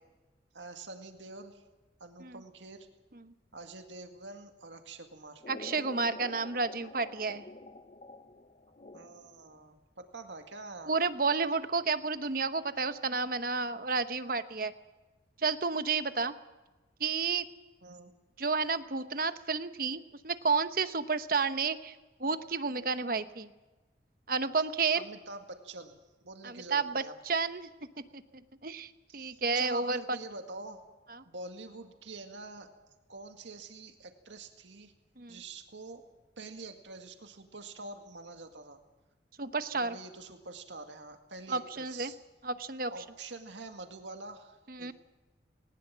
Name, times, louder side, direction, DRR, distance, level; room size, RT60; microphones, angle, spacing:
voice 1, 0.5-1.6 2.0-2.9 3.5-5.4 8.9-10.9 17.8-18.1 25.0-26.0 26.2-27.4 29.1-30.9 31.3-32.7 33.1-34.9 35.3-36.0 36.4-38.8 39.7-42.2 42.9-44.9, right 3 dB, 90° right, 6 dB, 2.0 m, -46 dB
sound 1, 5.4-9.5, left 2 dB, 35° left, 0.7 m, -48 dB
voice 2, 5.5-7.4 10.9-14.7 15.4-16.3 17.0-17.4 18.4-21.9 22.2-23.5 24.3-25.0 26.4-27.7 28.1-28.2 28.6-30.0 35.2-35.4 39.4-39.9 41.5-42.1 42.4-42.9 44.7-44.9, right 4 dB, 50° right, 11 dB, 1.0 m, -31 dB
19.5 x 19.5 x 7.5 m, 1.2 s
head